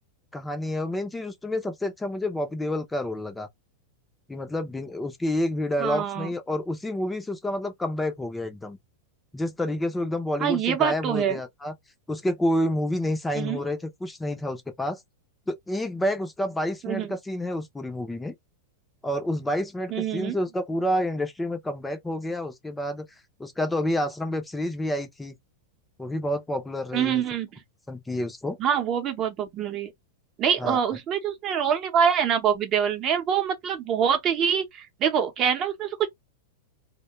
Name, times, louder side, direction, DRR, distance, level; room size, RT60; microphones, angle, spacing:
voice 1, 0.3-3.5 4.3-8.8 9.3-11.7 12.1-15.0 15.5-18.3 19.0-23.0 23.4-25.3 26.0-27.2 27.9-28.6 30.6-30.8, left 1 dB, 10° left, 0.6 m, -29 dB
voice 2, 5.8-6.3 10.4-11.4 13.3-13.6 16.8-17.1 19.9-20.4 26.9-27.5 28.6-29.9 30.4-36.1, right 8 dB, 35° right, 0.8 m, -25 dB
2.2 x 2.1 x 3.0 m
hypercardioid pair, 115°, 0 cm